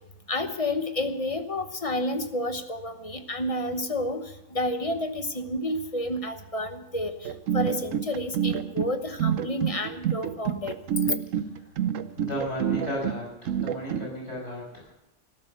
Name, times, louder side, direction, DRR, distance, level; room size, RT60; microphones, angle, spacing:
voice 1, 0.3-4.2 4.5-10.7, left 1 dB, 30° left, 8 dB, 1.0 m, -30 dB
sound 1, 7.2-14.1, right 9 dB, 90° right, 1.1 m, -28 dB
voice 2, 12.2-14.9, equal, 65° left, -2 dB, 5.8 m, -34 dB
14.0 x 12.5 x 6.8 m, 0.90 s
omnidirectional pair, 1.3 m